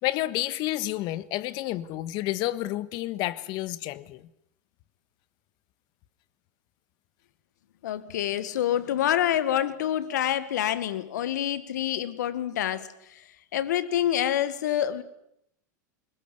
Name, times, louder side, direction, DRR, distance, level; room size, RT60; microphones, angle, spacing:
voice 1, 0.0-4.3, left 16 dB, 50° left, 1.5 m, -30 dB
voice 2, 7.8-13.2 13.5-15.0, left 11 dB, 80° left, 1.9 m, -27 dB
21.5 x 20.5 x 9.6 m
hypercardioid pair, 110°, 9 cm